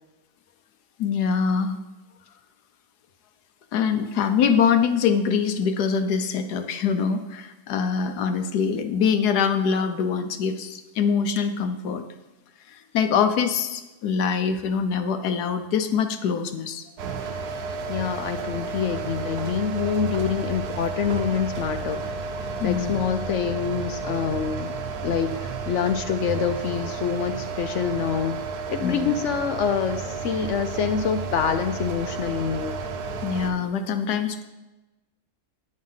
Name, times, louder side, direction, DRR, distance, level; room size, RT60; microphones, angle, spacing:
voice 1, 1.0-1.8 3.7-12.0 12.7-16.9 22.6-23.0 28.8-29.1 33.2-34.4, left 6 dB, 85° left, 8 dB, 1.3 m, -24 dB
sound 1, 17.0-33.5, right 4 dB, 85° right, 1.4 m, -32 dB
voice 2, 17.9-22.1 22.4-24.7 25.0-28.4 28.7-32.8, left 7 dB, 60° left, 8 dB, 0.9 m, -26 dB
10.0 x 6.5 x 5.6 m, 1.1 s
omnidirectional pair, 1.6 m